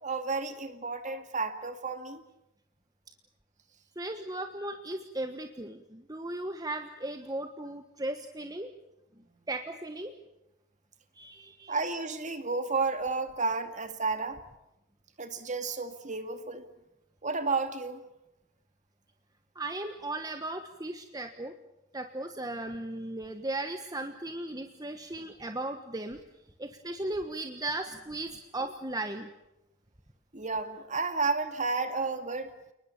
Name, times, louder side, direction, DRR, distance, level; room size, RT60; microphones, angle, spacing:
voice 1, 0.0-2.2 11.7-14.4 15.2-16.6 17.2-18.0 30.3-32.5, right 4 dB, 35° right, 9 dB, 2.3 m, -32 dB
voice 2, 4.0-8.7 9.5-10.1 11.1-11.8 19.5-21.5 21.9-26.2 26.6-29.3, right 2 dB, 20° right, 7 dB, 1.3 m, -36 dB
29.0 x 20.0 x 7.2 m, 0.89 s
head